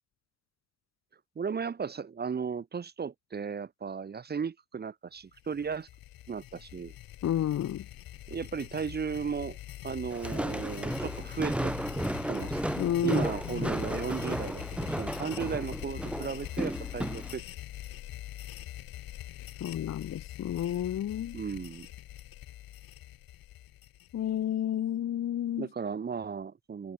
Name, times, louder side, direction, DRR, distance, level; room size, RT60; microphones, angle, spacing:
voice 1, 1.4-5.9 6.3-6.9 8.3-9.6 9.8-12.6 13.0-17.4 21.3-21.9 25.6-26.9, right 6 dB, 30° right, 0.8 m, -35 dB
sound 1, 5.4-24.4, left 13 dB, 85° left, 4.7 m, -43 dB
voice 2, 7.2-7.9 12.8-13.7 19.6-21.4 24.1-25.7, left 11 dB, 50° left, 0.7 m, -31 dB
Walk footsteps, 10.1-17.3, right 1 dB, 5° right, 0.5 m, -34 dB
cardioid pair, 105°, 34 cm